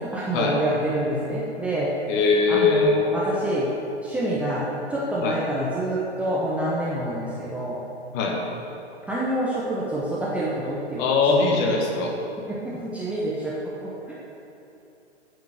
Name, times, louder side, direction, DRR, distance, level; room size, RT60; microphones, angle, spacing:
voice 1, 0.0-1.9 2.5-3.7 4.0-7.8 9.1-11.6 12.5-13.5 13.8-14.2, right 1 dB, 5° right, -7 dB, 0.7 m, -27 dB
voice 2, 2.1-3.0 5.2-5.4 8.1-8.4 11.0-12.1, left 4 dB, 25° left, 1 dB, 1.3 m, -21 dB
9.0 x 5.9 x 7.6 m, 2.8 s
figure-of-eight pair, 115°, 34 cm